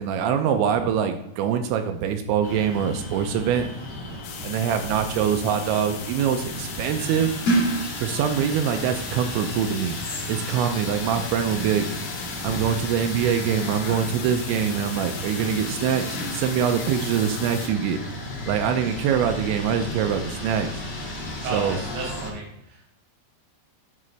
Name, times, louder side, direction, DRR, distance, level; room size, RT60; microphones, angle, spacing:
voice 1, 0.0-3.7 4.4-7.3 8.0-10.0 10.3-11.9 12.4-18.0 18.5-20.8 21.5-21.8, right 8 dB, 85° right, 6 dB, 2.8 m, -24 dB
sound 1, 2.4-22.3, equal, 60° left, 1.1 m, -32 dB
sound 2, 4.2-17.7, left 7 dB, 80° left, 3.2 m, -38 dB
voice 2, 21.4-22.9, right 3 dB, 65° right, -1 dB, 2.0 m, -33 dB
10.5 x 3.7 x 3.2 m, 0.77 s
omnidirectional pair, 5.3 m